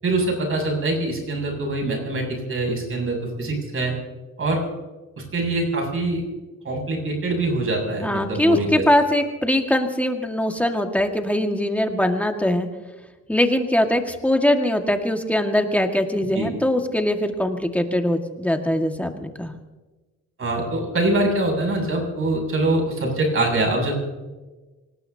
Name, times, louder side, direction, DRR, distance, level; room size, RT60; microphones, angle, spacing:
voice 1, 0.0-3.9 4.4-4.6 5.2-6.2 6.6-8.8 16.3-16.5 20.4-23.9, right 2 dB, 45° right, 1 dB, 7.3 m, -24 dB
voice 2, 8.0-12.7 13.3-19.6, left 1 dB, 5° left, 4 dB, 1.9 m, -22 dB
25.0 x 19.5 x 2.9 m, 1.2 s
cardioid pair, 90°, 30 cm